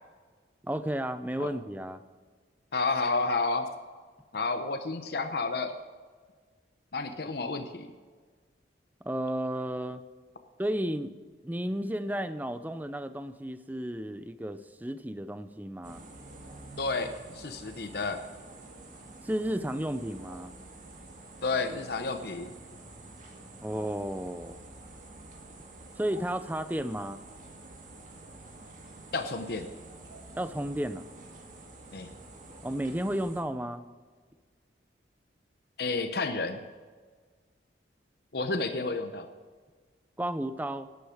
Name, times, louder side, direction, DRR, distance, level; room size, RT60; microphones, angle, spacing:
voice 1, 0.6-2.0 9.0-10.0 10.6-11.1 11.4-16.0 19.2-20.5 23.6-24.6 26.0-27.2 30.4-31.1 32.6-33.8 40.2-40.9, right 1 dB, 10° right, 11 dB, 0.5 m, -33 dB
voice 2, 2.7-3.7 4.3-5.7 6.9-7.9 16.8-18.2 21.4-22.5 29.1-29.7 31.9-32.1 35.8-36.6 38.3-39.3, left 3 dB, 55° left, 7 dB, 0.7 m, -31 dB
sound 1, 15.8-33.4, right 2 dB, 45° right, 1.9 m, -48 dB
11.5 x 9.6 x 4.9 m, 1.5 s
head